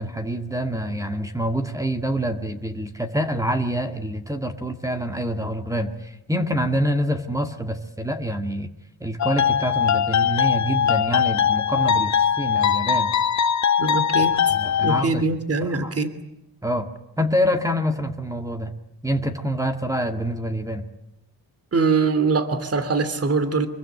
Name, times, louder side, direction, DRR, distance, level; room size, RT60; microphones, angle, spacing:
voice 1, 0.0-8.7 9.0-13.1 14.2-15.2 15.6-15.9 16.6-16.9 17.2-18.7 19.0-20.8, equal, 10° right, 6 dB, 1.9 m, -26 dB
sound 1, 9.2-15.0, left 8 dB, 45° left, 1.1 m, -21 dB
voice 2, 13.8-14.3 14.8-16.1 21.7-23.7, right 4 dB, 35° right, 12 dB, 2.9 m, -22 dB
26.0 x 23.0 x 9.7 m, 0.88 s
cardioid pair, 105°, 39 cm